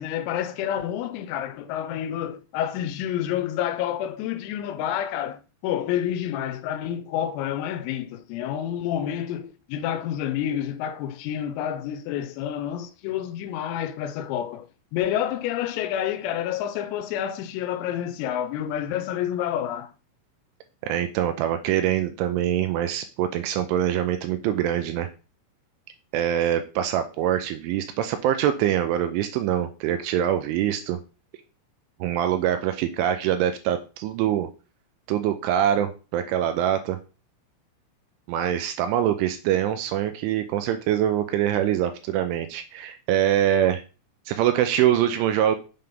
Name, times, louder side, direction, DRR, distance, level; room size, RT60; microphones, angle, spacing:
voice 1, 0.0-19.9, left 10 dB, 90° left, 3.4 m, -29 dB
voice 2, 20.8-25.1 26.1-31.0 32.0-34.5 35.1-37.0 38.3-43.8 44.3-45.6, right 11 dB, 85° right, 2.9 m, -24 dB
7.7 x 6.7 x 3.6 m
omnidirectional pair, 6.0 m